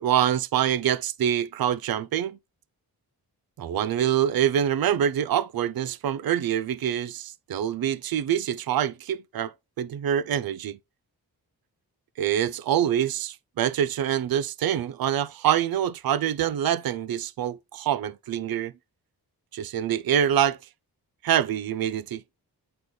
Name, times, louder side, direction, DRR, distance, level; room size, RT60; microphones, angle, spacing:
voice 1, 0.0-2.4 3.6-10.8 12.2-18.7 19.5-20.6 21.2-22.2, right 10 dB, 65° right, 0.5 m, -25 dB
8.7 x 3.9 x 3.1 m
cardioid pair, 80°, 39 cm